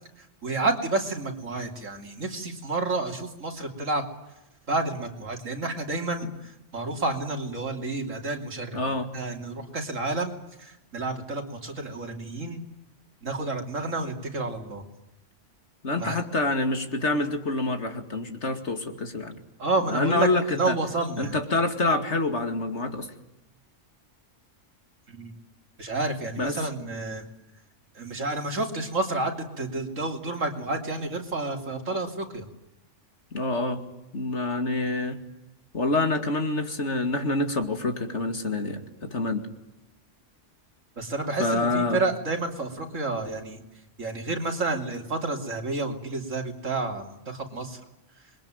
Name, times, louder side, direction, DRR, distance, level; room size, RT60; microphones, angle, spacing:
voice 1, 0.4-4.0 4.7-12.6 13.2-14.8 16.0-16.2 19.6-21.4 25.1-25.3 25.8-27.3 27.9-32.5 41.0-43.6 44.0-47.8, right 2 dB, 85° right, 4 dB, 3.4 m, -30 dB
voice 2, 8.7-9.1 15.8-19.4 19.9-20.8 21.2-23.1 26.4-26.5 33.3-33.8 34.1-35.2 35.7-39.5 41.4-42.0, left 2 dB, 65° left, 7 dB, 2.7 m, -27 dB
27.0 x 22.0 x 9.0 m, 0.94 s
omnidirectional pair, 1.3 m